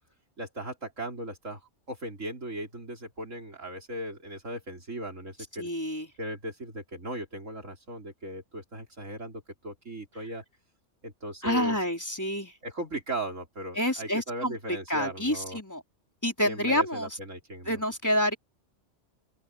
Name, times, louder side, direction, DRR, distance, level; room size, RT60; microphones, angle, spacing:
voice 1, 0.4-1.6 1.9-5.7 6.2-10.4 11.0-11.8 12.6-15.6 16.5-17.8, right 1 dB, 90° right, 5.0 m, -37 dB
voice 2, 5.6-6.1 11.4-12.5 13.8-14.6 14.9-15.8 16.2-17.1 17.7-18.4, left 1 dB, 15° left, 4.0 m, -28 dB
open air
omnidirectional pair, 1.3 m